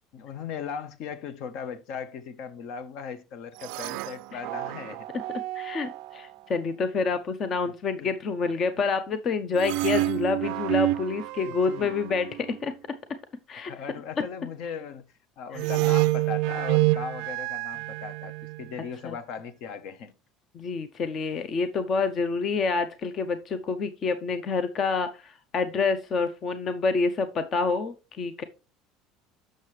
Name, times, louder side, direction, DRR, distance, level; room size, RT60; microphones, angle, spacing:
voice 1, 0.1-5.1 7.7-7.8 8.0-8.1 8.7-8.8 11.4-12.0 13.7-15.0 15.4-20.1, left 6 dB, 55° left, 0.8 m, -38 dB
sound 1, 3.6-6.2 9.6-12.6 15.5-18.7, right 19 dB, 70° right, 0.3 m, -28 dB
voice 2, 5.5-12.7 13.5-13.7 19.0-19.2 20.5-28.4, left 4 dB, 30° left, 0.5 m, -28 dB
7.4 x 6.4 x 3.1 m
cardioid pair, 170°, 0 cm